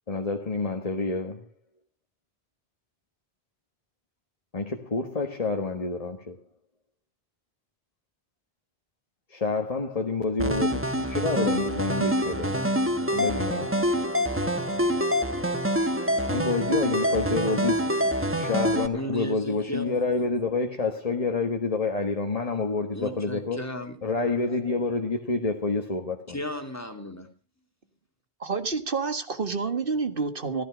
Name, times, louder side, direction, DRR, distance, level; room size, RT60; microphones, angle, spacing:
voice 1, 0.1-1.5 4.5-6.4 9.3-12.6 13.1-13.7 16.3-18.0 18.4-23.6 24.0-26.4, left 3 dB, 35° left, 1.5 m, -28 dB
sound 1, 10.4-18.9, equal, 10° right, 1.3 m, -26 dB
voice 2, 18.9-20.0 22.9-24.0 26.3-27.3, equal, 15° left, 2.6 m, -35 dB
voice 3, 28.4-30.6, right 4 dB, 55° right, 1.9 m, -28 dB
15.0 x 14.5 x 5.1 m
omnidirectional pair, 1.1 m